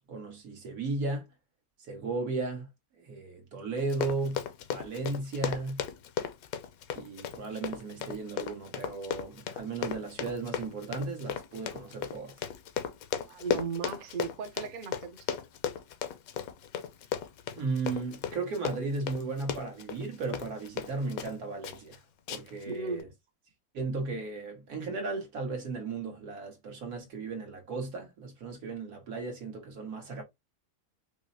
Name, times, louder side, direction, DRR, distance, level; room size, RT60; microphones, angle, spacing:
voice 1, 0.1-1.3 1.8-2.7 3.0-4.4 4.7-5.8 6.9-12.4 17.5-22.0 22.3-23.1 23.7-30.2, right 3 dB, 85° right, 1.7 m, -35 dB
Run, 3.8-21.4 21.6-22.0 22.3-22.6 23.0-23.1, left 9 dB, 75° left, 1.0 m, -36 dB
voice 2, 13.3-15.4 22.7-23.0, right 5 dB, 55° right, 0.6 m, -36 dB
5.3 x 2.0 x 2.6 m
omnidirectional pair, 1.5 m